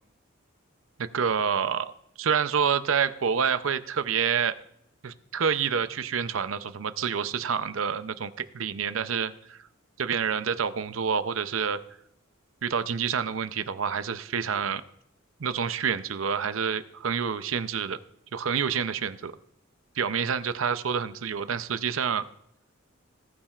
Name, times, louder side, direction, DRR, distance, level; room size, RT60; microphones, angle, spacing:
voice 1, 1.0-1.9 2.2-4.6 5.0-9.6 10.0-11.8 12.6-14.8 15.4-18.0 18.3-19.3 20.0-22.2, right 7 dB, 75° right, 12 dB, 0.6 m, -28 dB
19.0 x 8.8 x 2.4 m, 0.76 s
head